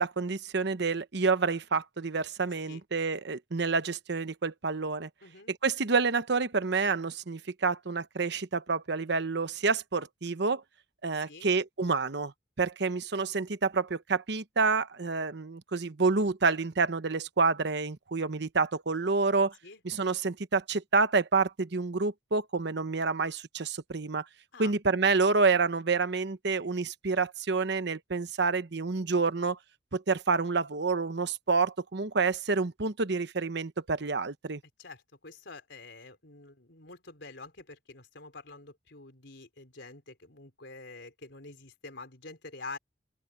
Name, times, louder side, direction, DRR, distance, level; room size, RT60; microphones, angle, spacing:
voice 1, 0.0-5.1 5.5-10.6 11.0-12.3 12.6-19.5 19.8-24.2 24.6-29.6 29.9-34.6, right 4 dB, 65° right, 1.0 m, -28 dB
voice 2, 5.2-5.5 11.1-11.5 19.6-19.8 24.5-24.7 34.8-42.8, left 3 dB, 70° left, 4.6 m, -47 dB
open air
head